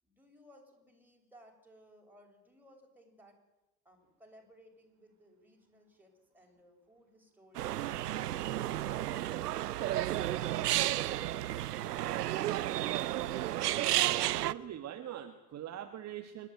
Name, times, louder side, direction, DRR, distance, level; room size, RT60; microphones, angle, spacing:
voice 1, 0.0-3.4 3.8-8.4, equal, 5° right, 1 dB, 7.2 m, -61 dB
sound 1, 7.5-14.5, right 14 dB, 90° right, 0.8 m, -32 dB
voice 2, 13.7-16.5, right 11 dB, 35° right, 6 dB, 1.7 m, -43 dB
28.5 x 12.5 x 9.4 m, 1.0 s
hypercardioid pair, 95°, 46 cm